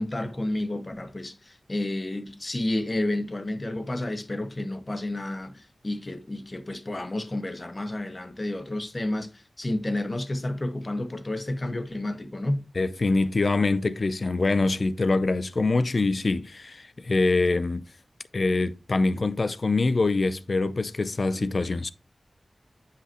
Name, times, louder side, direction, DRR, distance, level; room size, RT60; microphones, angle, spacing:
voice 1, 0.0-12.6, left 1 dB, 35° left, 1.4 m, -31 dB
voice 2, 12.7-17.8 18.3-21.9, left 3 dB, 55° left, 0.6 m, -24 dB
9.8 x 5.9 x 3.0 m
wide cardioid pair, 65°, 0 cm